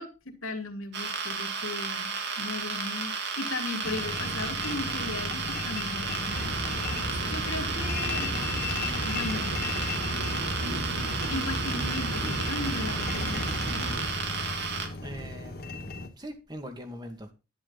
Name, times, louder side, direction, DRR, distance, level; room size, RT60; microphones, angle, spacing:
voice 1, 0.0-8.3 9.0-9.7 11.3-13.7, left 2 dB, 80° left, 2.8 m, -37 dB
sound 1, 0.9-14.9, right 5 dB, 55° right, 2.6 m, -33 dB
sound 2, 3.8-16.1, left 3 dB, 50° left, 2.1 m, -36 dB
sound 3, 6.3-14.1, right 1 dB, 90° right, 4.4 m, -34 dB
voice 2, 15.0-17.3, equal, 20° right, 2.3 m, -42 dB
11.0 x 10.5 x 4.2 m
head